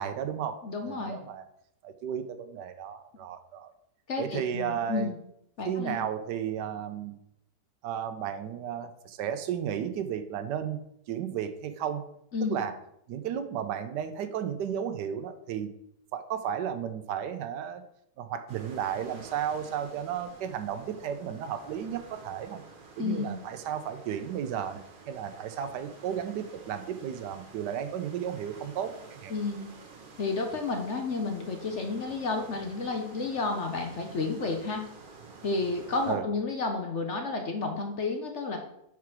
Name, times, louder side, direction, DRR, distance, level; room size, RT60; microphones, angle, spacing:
voice 1, 0.0-1.4 1.8-3.7 4.2-5.1 5.6-7.1 7.8-10.8 11.1-12.1 12.4-12.7 13.1-15.7 16.1-17.8 18.2-22.6 23.0-24.8 25.1-29.3 36.1-36.2, right 9 dB, 80° right, 9 dB, 1.2 m, -33 dB
voice 2, 0.6-1.2 4.1-5.2 5.6-6.0 12.3-12.6 23.0-23.4 29.3-29.7 30.2-34.8 35.4-38.6, left 3 dB, 55° left, 4 dB, 0.9 m, -31 dB
sound 1, 18.5-36.2, right 4 dB, 40° right, 0.8 m, -50 dB
4.7 x 4.7 x 6.0 m, 0.76 s
omnidirectional pair, 1.9 m